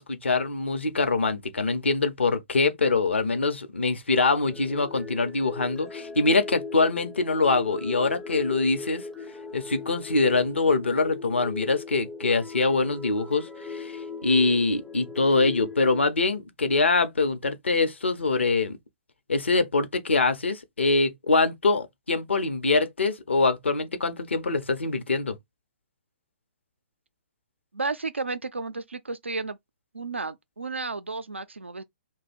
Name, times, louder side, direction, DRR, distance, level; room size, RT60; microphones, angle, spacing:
voice 1, 0.0-9.1 9.5-18.8 19.3-25.4, left 3 dB, 75° left, 0.7 m, -24 dB
sound 1, 4.4-16.0, left 4 dB, 5° left, 0.5 m, -39 dB
voice 2, 27.7-29.6 29.9-31.8, right 3 dB, 85° right, 0.5 m, -32 dB
2.7 x 2.2 x 4.1 m
figure-of-eight pair, 125°, 6 cm